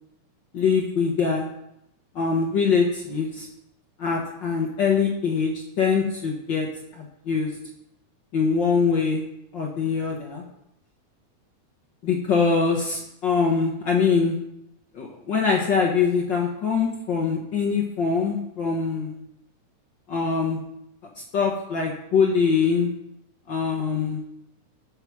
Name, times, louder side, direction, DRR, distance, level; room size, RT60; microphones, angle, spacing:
voice 1, 0.5-1.5 2.1-3.5 4.0-6.7 7.0-7.5 8.3-9.2 9.5-10.4 12.0-14.3 14.9-19.2 20.1-20.6 21.3-22.9 23.5-24.2, left 5 dB, 55° left, 0 dB, 1.4 m, -23 dB
9.3 x 6.8 x 6.0 m, 0.80 s
omnidirectional pair, 3.5 m